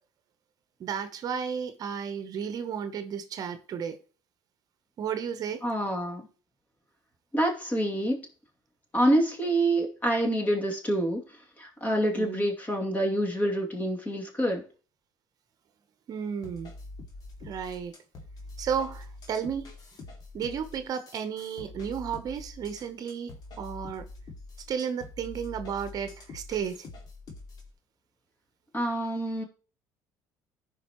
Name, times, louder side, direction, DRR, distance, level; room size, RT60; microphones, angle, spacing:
voice 1, 0.8-4.0 5.0-5.6 12.1-12.5 16.1-16.7 17.4-18.0 18.6-19.7 20.3-24.0 24.7-26.9, right 7 dB, 50° right, 0.9 m, -33 dB
voice 2, 5.6-6.3 7.3-8.2 8.9-11.2 11.6-14.6 28.7-29.4, right 1 dB, 20° left, 2.6 m, -27 dB
sound 1, 16.4-27.7, left 2 dB, 50° left, 2.3 m, -45 dB
14.5 x 5.3 x 3.0 m
supercardioid pair, 85°, 8 cm